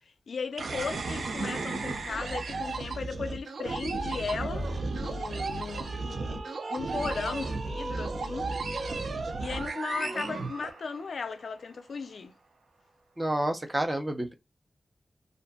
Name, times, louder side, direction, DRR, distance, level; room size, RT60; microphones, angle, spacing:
voice 1, 0.3-6.4 6.7-8.5 9.4-12.3, left 5 dB, 85° left, 0.3 m, -36 dB
sound 1, 0.6-11.2, right 3 dB, 80° right, 0.4 m, -34 dB
sound 2, 3.6-3.8 4.1-5.0 5.5-6.4 6.8-7.8 8.5-9.3 9.6-10.6, right 2 dB, 60° right, 1.0 m, -41 dB
voice 2, 13.2-14.3, right 1 dB, 20° right, 0.6 m, -29 dB
2.5 x 2.5 x 2.2 m
wide cardioid pair, 95°, 0 cm